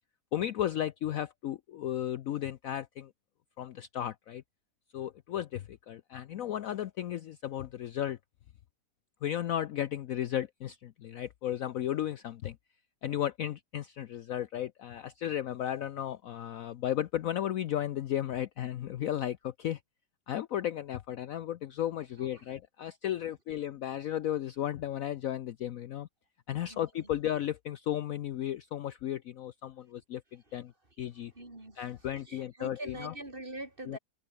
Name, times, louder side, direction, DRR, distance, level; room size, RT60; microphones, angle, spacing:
voice 1, 0.3-3.1 3.6-4.4 4.9-8.2 9.2-12.6 13.0-19.8 20.3-26.1 26.5-30.7 31.0-31.3 31.8-33.1 33.9-34.0, left 11 dB, 65° left, 0.9 m, -34 dB
voice 2, 26.7-27.1 30.5-30.6 31.3-31.9 32.2-34.0, right 2 dB, 30° right, 4.5 m, -44 dB
omnidirectional pair, 1.8 m